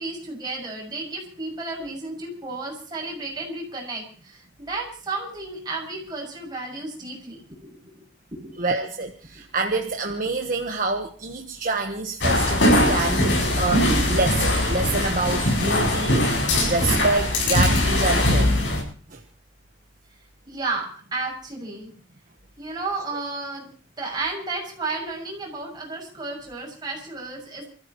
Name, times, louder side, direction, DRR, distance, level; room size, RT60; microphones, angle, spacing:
voice 1, 0.0-7.4 7.7-8.0 8.3-8.5 20.5-21.9 22.6-23.7 24.0-27.7, right 3 dB, 20° right, -2 dB, 7.3 m, -32 dB
voice 2, 8.6-18.5 19.1-19.2, right 3 dB, 45° right, 4 dB, 1.3 m, -27 dB
sound 1, 12.2-18.8, left 1 dB, 65° left, 7.9 m, -21 dB
28.5 x 15.0 x 3.2 m, 0.40 s
head